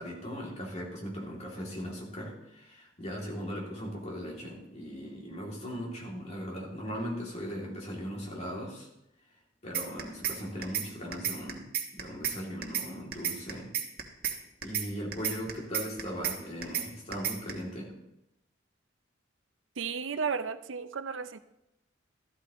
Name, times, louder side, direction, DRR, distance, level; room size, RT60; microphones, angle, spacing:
voice 1, 0.0-8.9 9.6-11.7 11.9-13.7 14.6-17.9, equal, 35° left, -2 dB, 2.8 m, -38 dB
sound 1, 9.7-10.4 10.6-10.9 11.1-12.4 12.6-12.9 13.1-14.4 14.6-14.9 15.1-16.4 16.6-16.9 17.1-17.5, right 9 dB, 50° right, 1.4 m, -31 dB
voice 2, 19.8-21.4, right 6 dB, 75° right, 12 dB, 0.6 m, -33 dB
13.0 x 12.0 x 3.1 m, 0.86 s
head